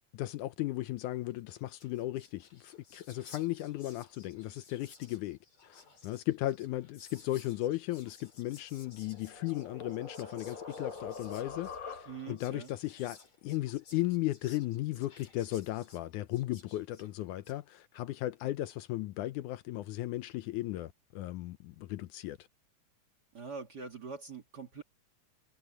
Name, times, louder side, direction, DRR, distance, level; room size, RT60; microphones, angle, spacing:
voice 1, 0.1-13.2 13.4-22.4, left 16 dB, 80° left, 2.0 m, -36 dB
Whispering, 1.4-1.5 1.6-17.6, left 4 dB, 55° left, 6.3 m, -57 dB
sound 1, 8.7-12.5, left 5 dB, 25° left, 6.0 m, -44 dB
voice 2, 12.1-12.7 23.3-24.8, right 5 dB, 35° right, 2.0 m, -43 dB
omnidirectional pair, 3.7 m